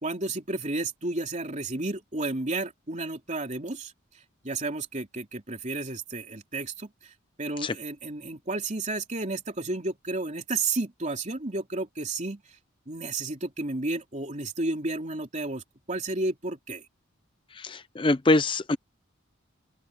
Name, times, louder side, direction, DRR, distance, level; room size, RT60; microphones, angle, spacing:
voice 1, 0.0-3.9 4.4-6.9 7.4-12.4 12.9-15.6 15.9-16.8, right 2 dB, 35° right, 3.4 m, -32 dB
voice 2, 17.6-18.8, left 2 dB, 25° left, 0.5 m, -24 dB
open air
head